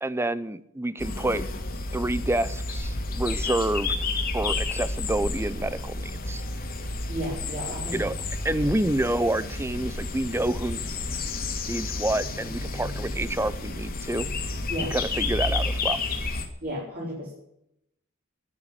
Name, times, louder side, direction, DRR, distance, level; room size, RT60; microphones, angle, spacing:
voice 1, 0.0-1.4 1.9-3.9 4.3-6.4 7.9-8.1 8.4-10.8 11.7-14.3 14.9-16.0, right 1 dB, 10° right, 16 dB, 0.6 m, -28 dB
sound 1, 1.0-16.5, left 3 dB, 45° left, 2.3 m, -31 dB
voice 2, 7.1-8.1 8.5-8.6 14.7-14.9 16.6-17.3, equal, 45° right, -4 dB, 4.9 m, -33 dB
13.0 x 8.9 x 9.7 m, 0.80 s
head